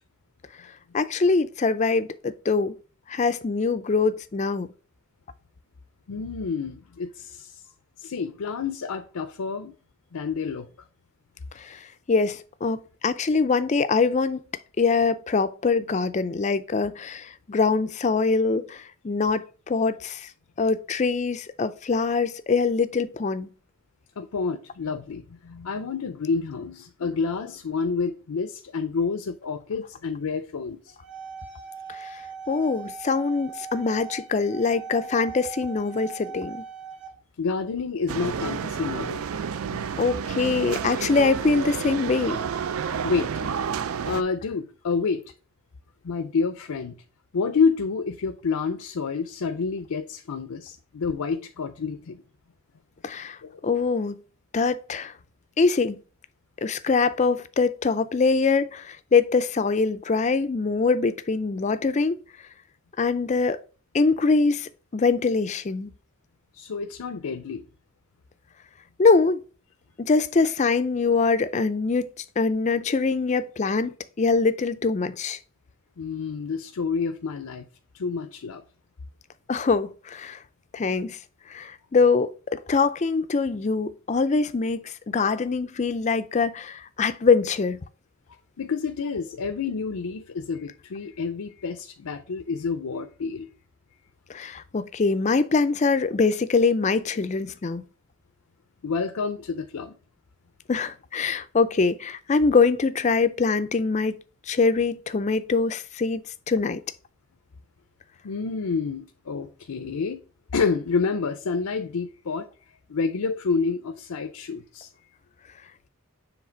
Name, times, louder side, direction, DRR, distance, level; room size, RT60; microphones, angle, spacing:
voice 1, 0.9-2.8 3.1-4.7 11.6-11.8 12.1-14.4 14.8-20.3 20.6-23.5 31.9-32.2 32.5-36.7 40.0-42.4 53.0-53.4 53.6-54.2 54.5-55.1 55.6-56.0 56.6-62.2 63.0-63.6 63.9-65.9 69.0-69.4 70.0-72.1 72.4-75.4 79.5-80.4 80.7-81.2 81.5-87.8 94.3-97.8 100.7-104.2 104.5-106.8, left 4 dB, 30° left, 0.4 m, -23 dB
voice 2, 6.1-7.6 8.0-9.7 10.1-10.7 24.2-30.9 37.4-39.2 39.7-39.9 43.0-43.3 44.0-45.2 46.0-47.0 47.3-52.2 53.4-53.6 66.5-67.6 76.0-77.6 77.9-78.6 88.6-93.5 98.8-100.0 108.2-110.2 110.5-112.5 112.9-114.9, left 5 dB, 85° left, 0.5 m, -28 dB
sound 1, 30.9-37.1, right 5 dB, 55° right, 1.6 m, -40 dB
sound 2, 38.1-44.2, right 7 dB, 70° right, 0.4 m, -30 dB
7.2 x 3.3 x 4.5 m
head